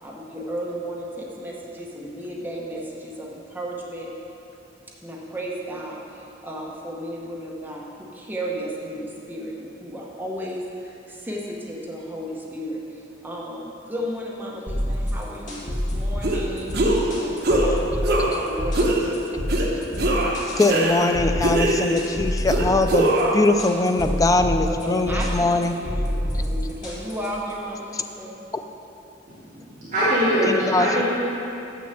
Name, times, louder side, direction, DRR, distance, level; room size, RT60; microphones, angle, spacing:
voice 1, 0.0-4.1 5.0-16.8 17.2-19.8 24.7-28.3, equal, 10° right, -3 dB, 0.9 m, -34 dB
sound 1, 14.7-27.5, equal, 45° left, 1.8 m, -27 dB
sound 2, 16.2-16.4 16.7-17.1 17.4-17.7 18.0-18.4 18.7-19.0 19.5-19.7 20.0-21.1 21.4-22.0 22.5-23.4, right 1 dB, 60° right, 1.0 m, -22 dB
voice 2, 20.6-25.8 27.9-28.0 30.5-31.0, left 2 dB, 20° left, 7 dB, 0.4 m, -21 dB
voice 3, 29.3-31.0, equal, 45° right, -11 dB, 2.2 m, -22 dB
7.1 x 6.4 x 6.7 m, 2.8 s
head